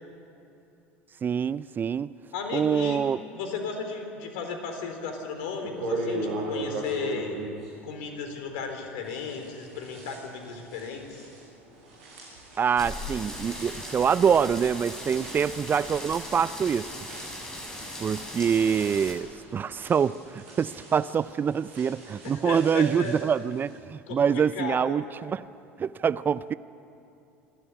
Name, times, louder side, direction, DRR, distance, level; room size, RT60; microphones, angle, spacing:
voice 1, 1.2-2.1 2.5-3.2 12.6-16.9 18.0-25.4 25.8-26.5, right 7 dB, 30° right, 18 dB, 0.5 m, -25 dB
voice 2, 2.3-3.0 3.3-7.4 7.8-11.3 22.2-23.1 24.1-25.0, left 5 dB, 65° left, 5 dB, 3.8 m, -35 dB
sound 1, 5.0-5.1 5.6-8.7 9.0-23.8, right 2 dB, 70° right, 6.8 m, -40 dB
sound 2, 12.8-19.1, left 1 dB, 10° left, 6.6 m, -39 dB
27.0 x 12.0 x 9.9 m, 2.7 s
figure-of-eight pair, 70°, 7 cm